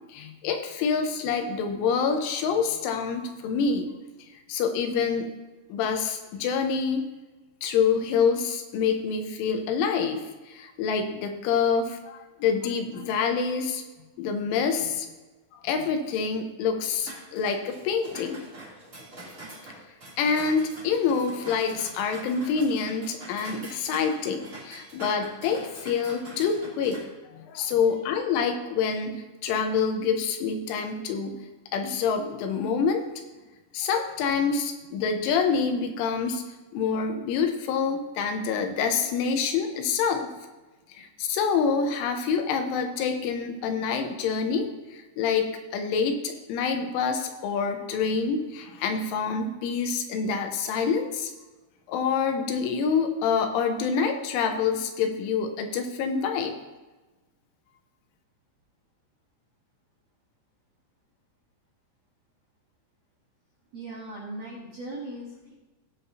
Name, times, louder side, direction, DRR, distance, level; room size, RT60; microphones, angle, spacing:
voice 1, 0.1-3.9 4.5-5.3 5.7-7.0 7.6-13.8 14.2-15.1 15.6-18.4 20.2-27.0 27.3-31.4 31.7-33.1 33.7-36.4 36.7-40.3 40.9-51.3 51.9-56.6, left 6 dB, 80° left, 5 dB, 3.3 m, -26 dB
sound 1, 17.0-27.0, right 1 dB, 25° right, 1.8 m, -44 dB
voice 2, 63.7-65.5, right 1 dB, 75° right, -5 dB, 1.6 m, -39 dB
17.5 x 7.7 x 2.7 m, 1.2 s
omnidirectional pair, 5.6 m